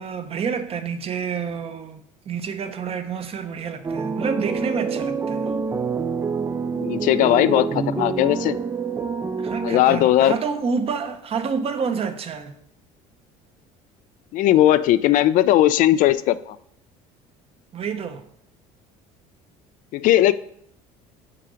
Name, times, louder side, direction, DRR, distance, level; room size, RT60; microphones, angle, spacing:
voice 1, 0.0-2.0 2.3-5.5 9.4-12.5 17.7-18.2, right 6 dB, 40° right, 0.8 m, -28 dB
sound 1, 3.8-10.3, right 5 dB, 20° right, 0.4 m, -27 dB
voice 2, 6.7-8.6 9.6-10.4 14.3-16.6 19.9-20.3, left 13 dB, 60° left, 0.4 m, -18 dB
5.8 x 4.7 x 5.0 m
supercardioid pair, 95°, 15 cm